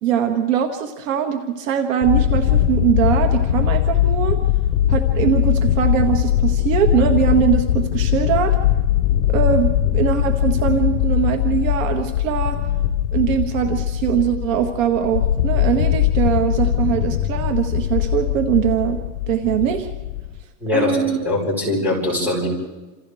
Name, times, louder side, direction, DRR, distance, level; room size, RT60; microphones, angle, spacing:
voice 1, 0.0-4.4 4.9-8.6 9.3-12.6 13.1-19.0 19.3-19.9 20.7-21.2, right 9 dB, 55° right, 5 dB, 1.6 m, -21 dB
sound 1, 2.0-20.4, left 11 dB, 70° left, 1.0 m, -20 dB
voice 2, 20.6-22.6, left 2 dB, 5° right, -3 dB, 4.5 m, -22 dB
28.5 x 27.0 x 3.5 m, 1.2 s
supercardioid pair, 175°, 46 cm